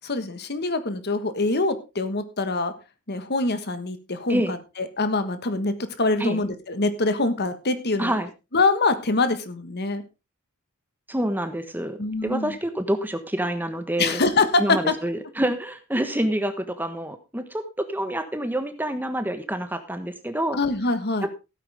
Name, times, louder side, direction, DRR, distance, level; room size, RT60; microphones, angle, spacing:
voice 1, 0.0-2.7 3.1-8.2 8.5-10.0 12.0-12.5 14.0-14.9 20.5-21.3, left 3 dB, 50° left, 11 dB, 1.5 m, -24 dB
voice 2, 8.0-8.3 11.1-14.2 14.6-20.6, right 1 dB, 10° right, 8 dB, 1.3 m, -27 dB
16.0 x 9.1 x 3.5 m, 0.28 s
head